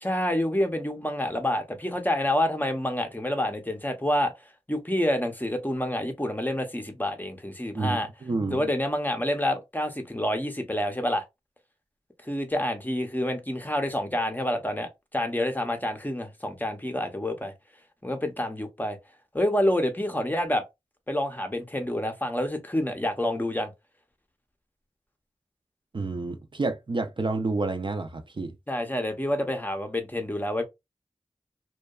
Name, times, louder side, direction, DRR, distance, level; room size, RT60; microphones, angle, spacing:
voice 1, 0.0-4.3 4.7-8.1 8.5-11.2 12.2-17.5 18.0-19.0 19.3-20.6 21.1-23.7 28.7-30.6, left 1 dB, 15° left, 0.6 m, -28 dB
voice 2, 7.7-8.7 25.9-28.5, right 3 dB, 45° right, 0.4 m, -29 dB
2.7 x 2.2 x 2.2 m
wide cardioid pair, 65°, 12 cm